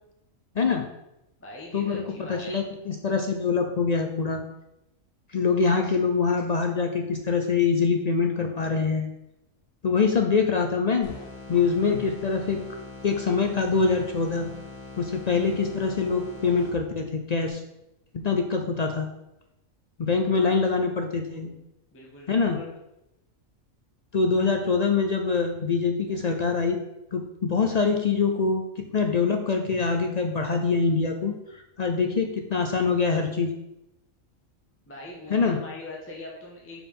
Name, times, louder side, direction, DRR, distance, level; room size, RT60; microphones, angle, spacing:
voice 1, 0.6-0.9 1.7-2.0 2.3-4.4 5.3-9.1 9.8-11.1 11.5-12.6 13.0-14.5 15.0-17.6 18.1-19.1 20.0-21.5 22.3-22.6 24.1-26.8 27.1-33.5 35.3-35.6, left 5 dB, 65° left, 4 dB, 0.4 m, -24 dB
voice 2, 1.4-2.6 20.2-20.4 21.9-22.7 34.9-36.8, left 2 dB, 10° left, -3 dB, 1.1 m, -41 dB
sound 1, 11.0-17.1, left 3 dB, 80° left, 1.8 m, -42 dB
5.4 x 4.7 x 5.4 m, 0.88 s
omnidirectional pair, 1.4 m